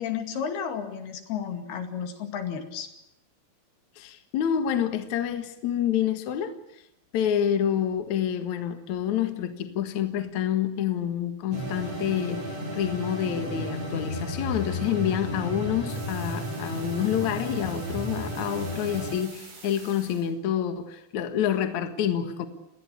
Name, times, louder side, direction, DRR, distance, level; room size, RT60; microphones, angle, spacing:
voice 1, 0.0-2.9, left 7 dB, 85° left, 7 dB, 4.3 m, -32 dB
voice 2, 4.0-6.6 7.1-22.5, left 9 dB, 55° left, 8 dB, 2.7 m, -28 dB
sound 1, 11.5-19.2, equal, 40° right, 8.6 m, -33 dB
sound 2, 15.9-20.3, right 4 dB, 55° right, 6.7 m, -48 dB
28.0 x 20.5 x 8.5 m, 0.82 s
omnidirectional pair, 4.4 m